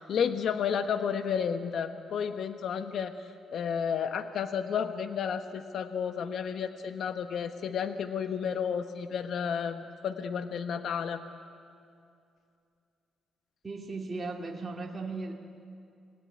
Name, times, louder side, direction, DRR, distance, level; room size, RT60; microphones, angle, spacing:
voice 1, 0.0-11.2, left 7 dB, 65° left, 8 dB, 1.2 m, -32 dB
voice 2, 13.6-15.3, right 3 dB, 25° right, -1 dB, 2.8 m, -36 dB
27.0 x 19.5 x 9.5 m, 2.5 s
cardioid pair, 90°, 0 cm